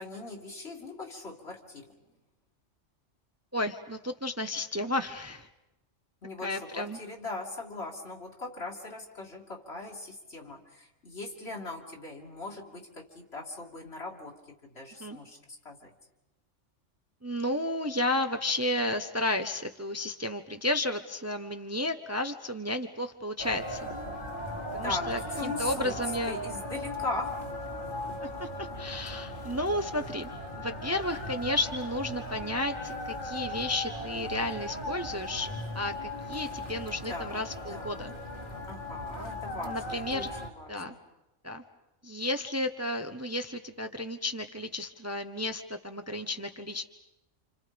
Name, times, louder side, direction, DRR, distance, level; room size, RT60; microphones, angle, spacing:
voice 1, 0.0-1.9 6.2-15.9 24.8-26.0 26.3-27.5 37.1-38.2 38.7-41.0, left 2 dB, 60° left, -1 dB, 2.9 m, -40 dB
voice 2, 3.5-5.5 6.4-7.0 15.0-15.2 17.2-23.9 24.7-26.3 28.2-35.5 35.7-38.1 39.6-40.3 40.7-40.9 41.4-41.6 42.0-46.8, left 1 dB, 15° right, 7 dB, 0.9 m, -32 dB
sound 1, 23.4-40.5, left 1 dB, 45° left, 2.1 m, -38 dB
29.5 x 27.5 x 5.2 m, 0.95 s
omnidirectional pair, 1.2 m